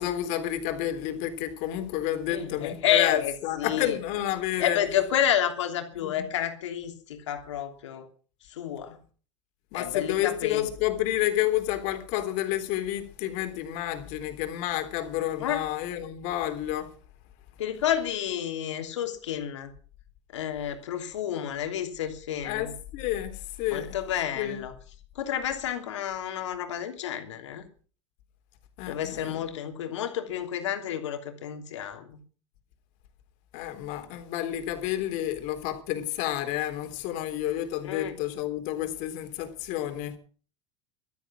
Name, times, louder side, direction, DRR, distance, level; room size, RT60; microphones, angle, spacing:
voice 1, 0.0-4.8 6.0-6.3 9.7-16.9 22.4-24.0 24.4-24.6 28.8-29.4 33.5-40.2, left 13 dB, 60° left, 3.6 m, -30 dB
voice 2, 2.3-4.0 4.6-8.1 8.5-9.0 9.7-10.7 15.4-15.6 17.6-19.7 20.3-22.7 23.7-24.7 25.1-27.7 28.9-32.2 37.8-38.1, left 10 dB, 80° left, 3.1 m, -30 dB
14.0 x 13.0 x 6.3 m
hypercardioid pair, 90°, 15 cm